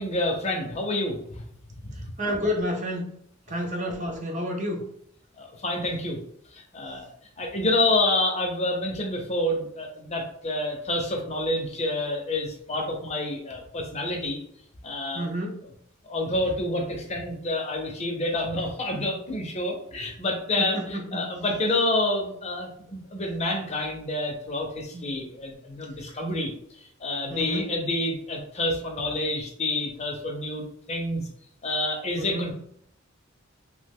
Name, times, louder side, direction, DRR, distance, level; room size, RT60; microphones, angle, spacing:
voice 1, 0.0-1.4 1.8-2.1 5.4-6.2 6.5-7.1 7.4-14.4 14.8-15.3 16.0-26.5 27.0-31.3 31.6-32.5, left 1 dB, 30° left, 2 dB, 0.6 m, -28 dB
voice 2, 2.2-3.1 3.5-4.8 15.1-15.6 20.6-21.3 24.9-25.0 27.3-27.6 32.2-32.5, equal, 35° right, 2 dB, 0.6 m, -30 dB
3.0 x 2.1 x 3.5 m, 0.69 s
head